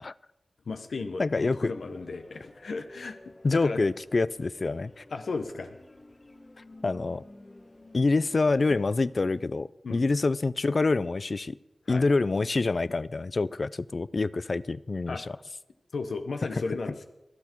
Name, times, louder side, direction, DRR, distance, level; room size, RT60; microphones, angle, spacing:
voice 1, 0.7-3.8 5.1-5.8 9.8-10.0 11.9-12.1 15.1-15.2 15.9-17.1, left 4 dB, 85° left, 6 dB, 0.9 m, -35 dB
voice 2, 1.2-1.7 3.4-5.0 6.8-7.2 7.9-11.6 11.9-15.3, left 3 dB, 55° left, 19 dB, 0.4 m, -26 dB
sound 1, 1.8-9.5, left 2 dB, 30° left, 1.0 m, -53 dB
23.5 x 8.1 x 4.5 m, 0.98 s
wide cardioid pair, 60°, 0 cm